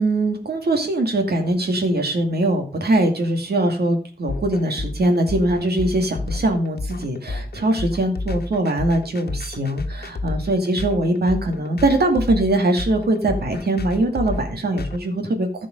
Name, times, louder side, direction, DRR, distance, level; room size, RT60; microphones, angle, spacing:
voice 1, 0.0-15.7, right 1 dB, 80° right, 4 dB, 2.4 m, -21 dB
sound 1, 4.3-15.0, left 2 dB, 75° left, 1.2 m, -30 dB
14.5 x 5.3 x 5.2 m, 0.37 s
wide cardioid pair, 85°, 16 cm